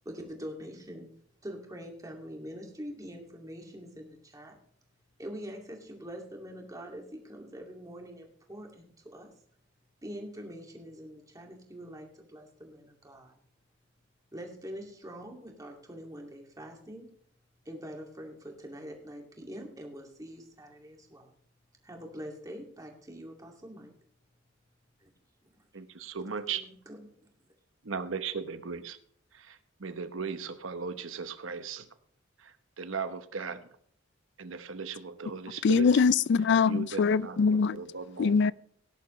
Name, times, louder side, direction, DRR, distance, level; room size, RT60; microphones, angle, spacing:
voice 1, 0.0-1.1 1.4-4.6 5.2-9.3 10.0-13.4 14.3-17.1 17.7-21.3 21.8-23.9 25.0-25.1 26.5-27.3, equal, 20° right, 2.4 m, -44 dB
voice 2, 25.7-26.6 27.8-29.0 29.3-31.8 32.4-33.7 34.4-36.0 36.7-37.4 37.7-38.4, right 5 dB, 85° right, 1.0 m, -37 dB
voice 3, 35.6-37.8 38.2-38.5, left 5 dB, 60° left, 0.4 m, -23 dB
17.5 x 10.5 x 3.2 m
head